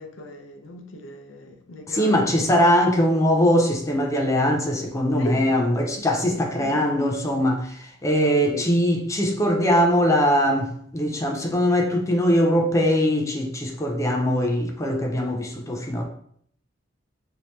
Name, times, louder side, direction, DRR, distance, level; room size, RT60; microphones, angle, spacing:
voice 1, 0.0-2.6 5.2-5.4 6.6-6.8 8.5-8.7, equal, 85° left, 0.5 m, -37 dB
voice 2, 1.9-16.0, equal, 15° left, 0.4 m, -21 dB
3.0 x 2.8 x 3.1 m
head